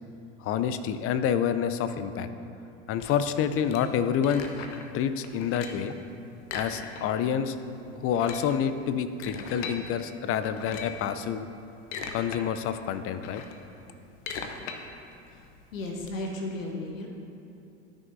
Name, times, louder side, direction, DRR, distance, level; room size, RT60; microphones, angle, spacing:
voice 1, 0.4-2.3 2.9-4.4 4.9-5.9 6.5-7.6 8.0-11.5 12.1-13.4, left 8 dB, 35° left, 11 dB, 0.5 m, -28 dB
sound 1, 3.0-4.9 5.2-5.9 6.4-7.3 7.6-7.7 8.0-9.8 10.4-11.1 11.6-12.4 12.8-16.1, left 5 dB, 70° left, 0.9 m, -40 dB
voice 2, 15.7-17.1, left 2 dB, 90° left, 0 dB, 1.3 m, -34 dB
12.5 x 6.3 x 2.7 m, 2.7 s
hypercardioid pair, 90°, 38 cm